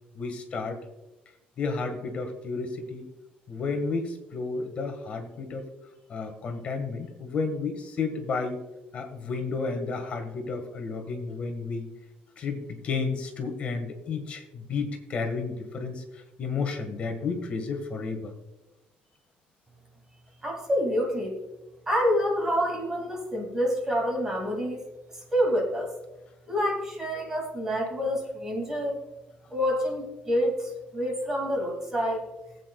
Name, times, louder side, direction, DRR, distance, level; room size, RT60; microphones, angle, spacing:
voice 1, 0.1-0.8 1.6-3.1 3.5-5.7 6.1-8.6 8.9-11.8 12.4-18.3, left 4 dB, 35° left, 5 dB, 1.6 m, -32 dB
voice 2, 20.4-21.4 21.9-24.8 25.3-25.9 26.5-29.0 29.5-32.3, equal, 15° right, 1 dB, 2.3 m, -27 dB
19.5 x 8.3 x 2.3 m, 1.0 s
cardioid pair, 175°, 3 cm